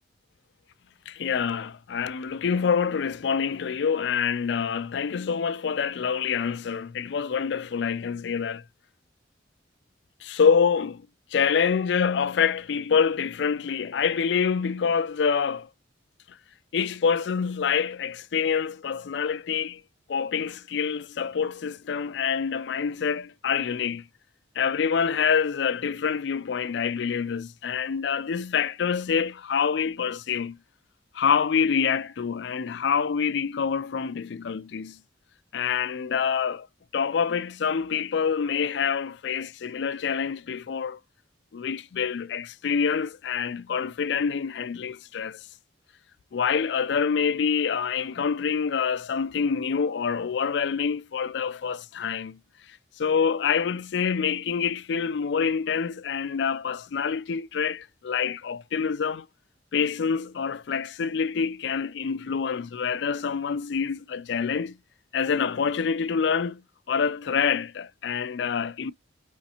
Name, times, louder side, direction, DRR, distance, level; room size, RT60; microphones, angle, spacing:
voice 1, 1.1-8.6 10.2-11.1 11.3-15.7 16.3-16.4 16.7-19.8 20.1-24.0 24.6-30.6 31.1-35.0 35.5-36.7 36.9-41.0 41.5-45.5 46.3-52.4 52.7-59.3 59.7-64.8 65.1-66.6 66.9-68.9, left 6 dB, 65° left, 0.4 m, -26 dB
5.0 x 3.2 x 2.8 m
head